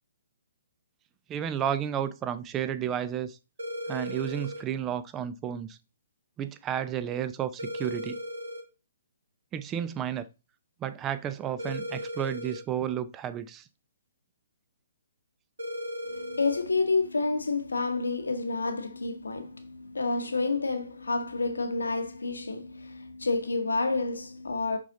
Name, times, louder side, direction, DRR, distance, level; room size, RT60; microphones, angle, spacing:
voice 1, 1.3-3.4 3.9-5.8 6.4-8.2 9.5-10.3 10.8-13.6, right 9 dB, 20° right, 0.6 m, -32 dB
sound 1, 3.6-4.6 7.6-8.6 11.6-12.6 15.6-16.6, equal, 85° right, 1.9 m, -36 dB
voice 2, 16.1-24.8, left 3 dB, 90° left, 1.0 m, -29 dB
6.1 x 4.3 x 3.7 m
hypercardioid pair, 135°, 0 cm